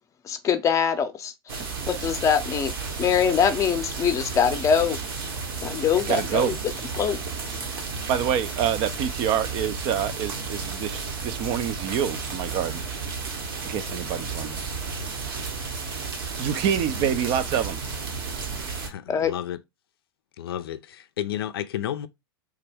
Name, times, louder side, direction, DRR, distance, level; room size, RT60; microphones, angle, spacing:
voice 1, 0.2-1.6 1.9-2.7 3.0-5.0 5.6-6.5 7.0-7.2 19.1-19.3, left 7 dB, 25° left, 0.6 m, -23 dB
sound 1, 1.5-18.9, right 4 dB, 65° right, 1.1 m, -33 dB
voice 2, 6.1-6.6 8.1-12.8 13.6-14.6 16.4-17.8, right 9 dB, 40° right, 0.4 m, -26 dB
voice 3, 18.8-19.6 20.4-22.1, left 11 dB, 75° left, 0.4 m, -32 dB
3.5 x 2.1 x 3.4 m
hypercardioid pair, 100°, 13 cm